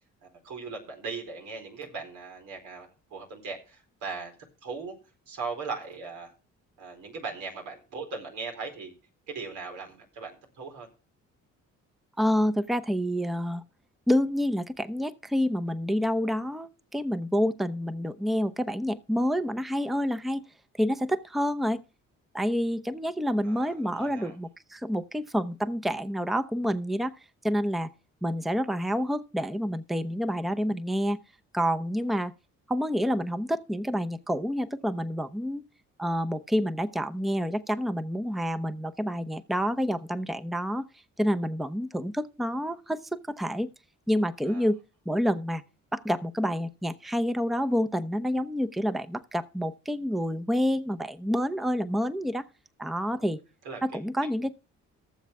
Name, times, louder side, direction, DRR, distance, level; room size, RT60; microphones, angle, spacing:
voice 1, 0.2-4.3 4.6-5.0 5.3-6.3 6.8-8.9 9.3-10.9 23.4-24.4 44.4-44.7 53.1-53.3 53.6-53.8, right 4 dB, 85° right, 4.3 m, -39 dB
voice 2, 12.2-13.6 14.1-20.4 20.8-21.8 22.3-27.2 27.4-27.9 28.2-31.2 31.5-32.3 32.7-35.6 36.0-40.9 41.2-43.7 44.1-44.8 45.1-45.6 45.9-52.4 52.8-53.4 53.8-54.5, equal, ahead, 0.8 m, -28 dB
18.0 x 7.3 x 3.5 m
cardioid pair, 90°, 30 cm